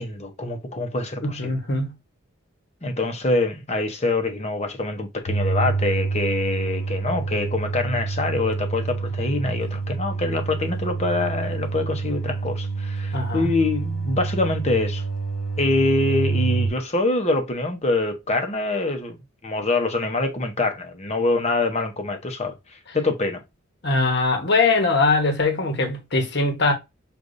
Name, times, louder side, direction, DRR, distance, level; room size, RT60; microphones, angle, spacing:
voice 1, 0.0-1.6 2.8-15.0 15.6-19.2 19.4-23.4, left 2 dB, 30° left, 0.8 m, -25 dB
voice 2, 1.2-1.9 13.1-13.5 23.8-26.7, left 3 dB, 55° left, 1.1 m, -21 dB
sound 1, 5.3-16.7, right 4 dB, 85° left, 1.1 m, -27 dB
6.4 x 2.5 x 2.6 m
head